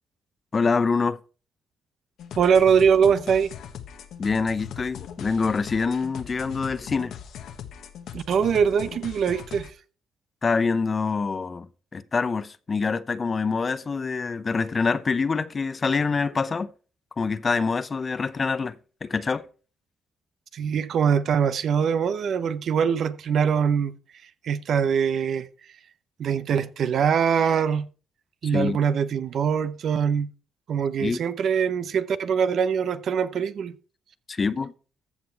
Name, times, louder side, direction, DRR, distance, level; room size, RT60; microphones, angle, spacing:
voice 1, 0.5-1.2 4.2-7.1 10.4-11.7 11.9-16.7 17.2-18.8 19.0-19.5 28.4-28.8 31.0-31.2 34.3-34.7, left 4 dB, 35° left, 0.8 m, -25 dB
sound 1, 2.2-9.7, left 9 dB, 75° left, 1.3 m, -40 dB
voice 2, 2.4-3.5 8.1-9.7 20.5-23.9 24.4-25.5 26.2-27.9 28.4-30.3 30.7-33.7, right 7 dB, 65° right, 0.8 m, -23 dB
14.5 x 5.9 x 4.6 m
cardioid pair, 90°, 0 cm